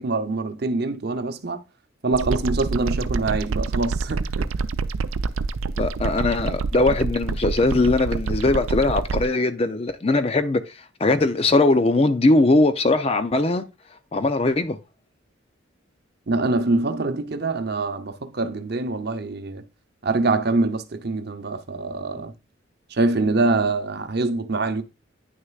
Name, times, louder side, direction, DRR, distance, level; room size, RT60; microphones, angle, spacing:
voice 1, 0.0-1.6 2.0-4.3 16.3-19.6 20.0-22.3 22.9-24.8, right 3 dB, 50° right, 0.8 m, -24 dB
sound 1, 2.1-9.2, right 4 dB, 90° right, 0.5 m, -27 dB
voice 2, 5.8-10.7 11.0-13.7 14.1-14.8, left 2 dB, 30° left, 0.5 m, -20 dB
9.5 x 6.5 x 2.4 m
head